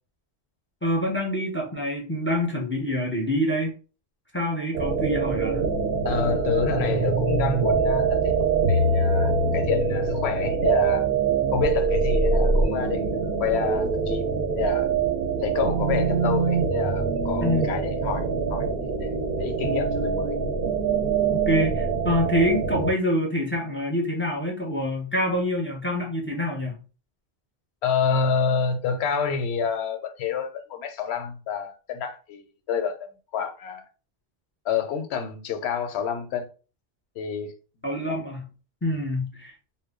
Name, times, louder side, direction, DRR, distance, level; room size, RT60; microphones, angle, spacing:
voice 1, 0.8-3.7 4.3-5.7 17.4-17.8 21.3-26.8 37.8-38.5 38.8-39.5, left 1 dB, 15° left, 0.5 m, -26 dB
sound 1, 4.7-22.9, right 4 dB, 65° right, 0.7 m, -24 dB
voice 2, 6.0-11.1 11.5-14.9 15.4-18.2 18.5-18.7 19.0-19.1 19.4-20.4 27.8-33.8 34.6-36.5 37.2-37.5, left 6 dB, 80° left, 0.8 m, -28 dB
2.2 x 2.1 x 3.5 m
omnidirectional pair, 1.1 m